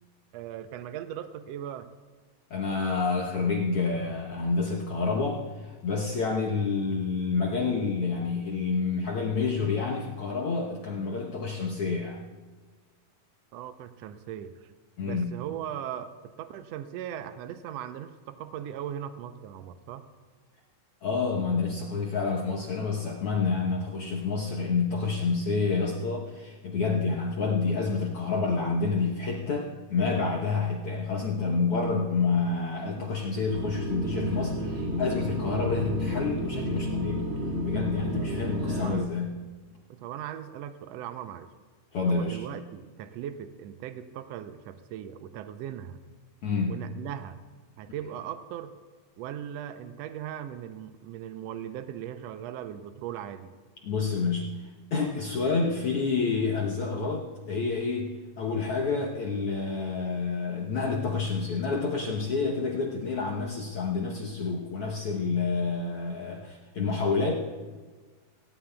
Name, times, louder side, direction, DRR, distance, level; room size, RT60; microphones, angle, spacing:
voice 1, 0.3-1.9 13.5-14.7 15.0-20.0 32.9-33.2 38.8-39.1 39.9-41.5 42.0-46.0 46.7-47.4 47.8-48.7 49.2-53.5 58.9-59.1, right 10 dB, 90° right, 9 dB, 1.4 m, -38 dB
voice 2, 2.5-12.3 15.0-15.3 21.0-37.2 37.7-39.4 41.9-42.4 46.4-46.8 53.8-67.3, left 4 dB, 65° left, -1 dB, 1.5 m, -28 dB
sound 1, 33.5-39.0, equal, 40° right, 2.5 m, -31 dB
18.5 x 18.0 x 2.3 m, 1.4 s
omnidirectional pair, 3.7 m